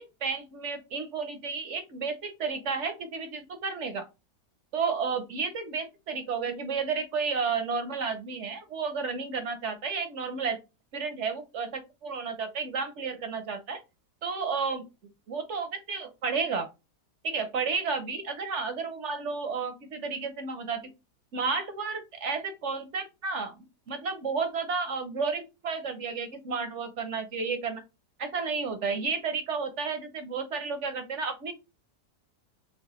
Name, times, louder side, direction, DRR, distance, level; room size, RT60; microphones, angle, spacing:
voice 1, 0.0-4.1 4.7-10.6 10.9-13.8 14.2-14.8 15.3-16.7 17.2-20.8 21.3-23.5 23.9-27.8 28.2-31.5, right 5 dB, 60° right, 8 dB, 0.8 m, -32 dB
4.6 x 3.3 x 3.0 m, 0.26 s
omnidirectional pair, 1.8 m